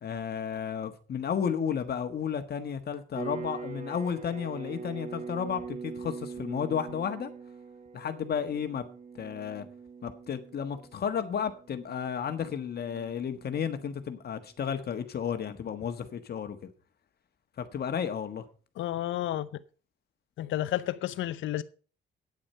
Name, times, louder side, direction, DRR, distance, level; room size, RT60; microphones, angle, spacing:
voice 1, 0.0-7.3 7.9-8.8 9.1-9.7 10.0-16.7 17.6-18.4, left 7 dB, 55° left, 1.4 m, -33 dB
sound 1, 3.1-14.2, right 5 dB, 40° right, 0.9 m, -43 dB
voice 2, 18.8-19.6 20.4-21.6, left 13 dB, 75° left, 0.8 m, -31 dB
9.1 x 8.8 x 5.5 m
cardioid pair, 90°, 20 cm